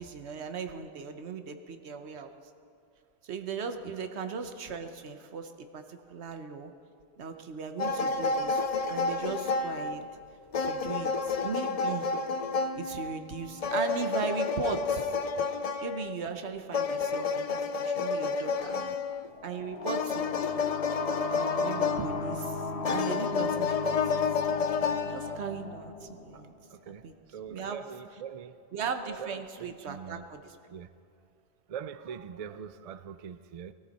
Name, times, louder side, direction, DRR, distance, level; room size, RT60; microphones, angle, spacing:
voice 1, 0.0-2.3 3.2-6.7 7.2-8.6 8.9-10.0 10.6-12.1 12.8-15.1 15.8-18.8 19.4-20.7 21.3-24.0 24.8-26.5 26.9-27.2 27.5-27.8 28.7-30.6, right 5 dB, 80° right, 7 dB, 1.2 m, -38 dB
sound 1, 7.8-10.2 10.5-16.2 16.7-19.3 19.8-22.5 22.8-25.4, left 5 dB, 50° left, 0.4 m, -30 dB
sound 2, 19.3-26.8, left 3 dB, 80° left, 1.3 m, -37 dB
voice 2, 26.7-27.0 27.3-28.6 29.2-30.2 30.7-30.9 31.7-33.7, right 8 dB, 55° right, 14 dB, 0.4 m, -42 dB
19.5 x 14.0 x 4.1 m, 2.4 s
omnidirectional pair, 1.1 m